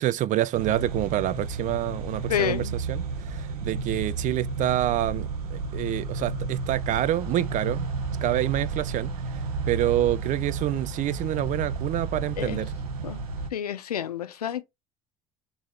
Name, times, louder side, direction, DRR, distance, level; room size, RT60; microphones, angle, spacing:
voice 1, 0.0-3.0 3.6-7.9 8.2-9.1 9.7-12.7, right 13 dB, 40° right, 0.4 m, -27 dB
sound 1, 0.5-13.5, right 4 dB, 75° right, 0.8 m, -32 dB
voice 2, 2.3-2.8 12.4-12.6 13.0-13.2 13.5-14.6, left 10 dB, 80° left, 0.5 m, -29 dB
4.0 x 3.1 x 3.5 m
figure-of-eight pair, 60°, 19 cm